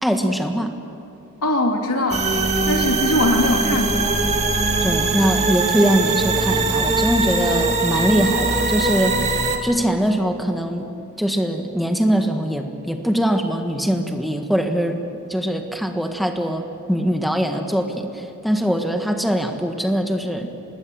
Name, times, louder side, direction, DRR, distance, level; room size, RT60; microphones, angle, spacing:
voice 1, 0.0-0.7 4.8-9.2 9.6-10.9 11.2-15.0 15.3-20.5, equal, ahead, 4 dB, 1.5 m, -22 dB
voice 2, 1.4-2.3 2.7-4.2, left 1 dB, 90° left, 2 dB, 3.1 m, -21 dB
sound 1, 2.1-9.6, right 3 dB, 30° right, 2.1 m, -21 dB
25.5 x 20.0 x 7.6 m, 2.6 s
head